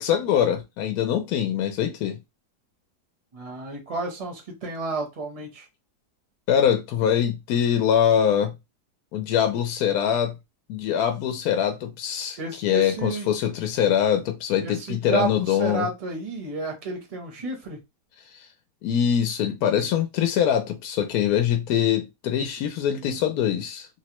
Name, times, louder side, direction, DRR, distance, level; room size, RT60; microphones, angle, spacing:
voice 1, 0.0-2.2 6.5-8.5 9.1-10.4 10.7-15.9 18.8-23.9, left 9 dB, 75° left, 1.0 m, -23 dB
voice 2, 3.3-5.7 12.4-13.3 14.6-17.8, right 3 dB, 30° right, 0.7 m, -31 dB
3.1 x 2.1 x 2.9 m
omnidirectional pair, 1.8 m